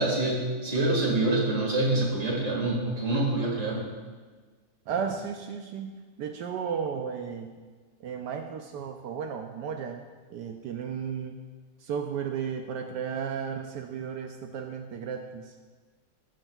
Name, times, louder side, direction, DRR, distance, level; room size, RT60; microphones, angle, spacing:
voice 1, 0.0-3.9, right 2 dB, 45° right, -3 dB, 2.2 m, -26 dB
voice 2, 4.9-5.9 6.2-7.5 8.0-10.0 10.3-11.4 11.8-15.5, right 7 dB, 80° right, 4 dB, 1.2 m, -34 dB
18.0 x 6.2 x 2.3 m, 1.4 s
omnidirectional pair, 1.9 m